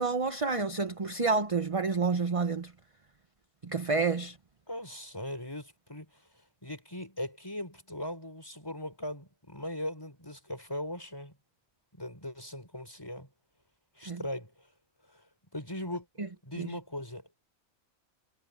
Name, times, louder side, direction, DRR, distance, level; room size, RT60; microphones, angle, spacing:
voice 1, 0.0-2.7 3.6-4.4 14.1-14.2 16.6-16.7, right 4 dB, 25° right, 1.0 m, -29 dB
voice 2, 4.7-11.4 11.9-13.3 14.0-14.7 15.1-15.3 15.5-17.4, left 1 dB, 15° left, 6.0 m, -40 dB
omnidirectional pair, 1.4 m